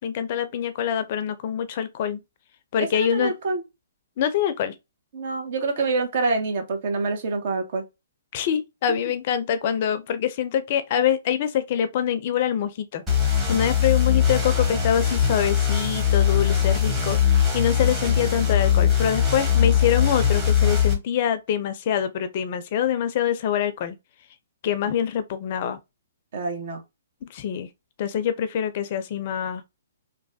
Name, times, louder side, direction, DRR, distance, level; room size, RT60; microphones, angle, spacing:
voice 1, 0.0-2.2 2.7-3.3 4.2-4.7 8.3-13.0 13.5-17.2 17.5-24.0 24.6-25.8 27.3-27.7 28.0-29.6, left 9 dB, 45° left, 0.4 m, -25 dB
voice 2, 2.8-3.6 5.1-7.8 8.9-9.0 26.3-26.8, right 3 dB, 55° right, 0.9 m, -26 dB
sound 1, 13.1-20.9, left 8 dB, 15° right, 1.1 m, -21 dB
3.1 x 2.2 x 2.6 m
hypercardioid pair, 135°, 0 cm